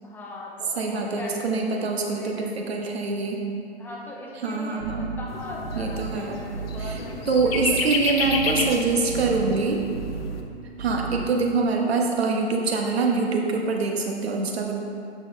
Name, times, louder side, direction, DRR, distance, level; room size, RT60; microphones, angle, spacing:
voice 1, 0.0-2.6 3.8-8.2 10.3-10.4, left 1 dB, 5° left, -3 dB, 0.4 m, -40 dB
voice 2, 0.8-3.4 4.4-5.1 5.7-6.4 6.8-6.9 7.3-9.8 10.8-14.7, right 3 dB, 65° right, 1 dB, 1.2 m, -24 dB
sound 1, 4.8-11.6, right 7 dB, 90° right, 0.8 m, -36 dB
sound 2, 5.3-10.4, left 4 dB, 60° left, 0.9 m, -31 dB
8.4 x 6.1 x 3.3 m, 2.5 s
hypercardioid pair, 125°, 33 cm